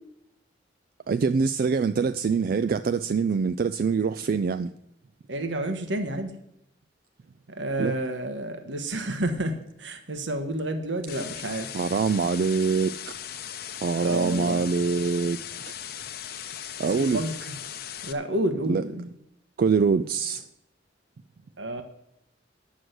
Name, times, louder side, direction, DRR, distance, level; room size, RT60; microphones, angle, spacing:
voice 1, 1.1-4.7 7.8-7.9 11.7-13.0 13.8-15.4 16.8-17.2 18.7-18.8 19.6-20.4, right 5 dB, 50° right, 0.3 m, -24 dB
voice 2, 5.3-6.3 7.6-11.7 14.0-14.6 16.9-17.3 18.0-19.1 21.6-21.8, right 1 dB, 75° right, 1.2 m, -30 dB
sound 1, 11.1-18.1, left 9 dB, 55° left, 0.7 m, -38 dB
9.5 x 6.3 x 7.8 m
head